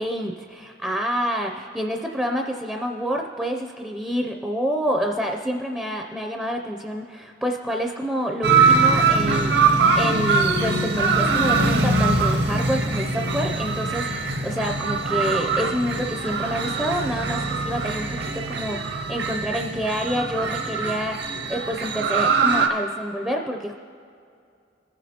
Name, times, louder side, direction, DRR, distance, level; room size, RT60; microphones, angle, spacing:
voice 1, 0.0-21.2 21.5-23.7, equal, 5° right, 3 dB, 0.4 m, -28 dB
sound 1, 8.4-22.7, right 4 dB, 60° right, 0.8 m, -22 dB
20.0 x 7.4 x 2.8 m, 2.4 s
head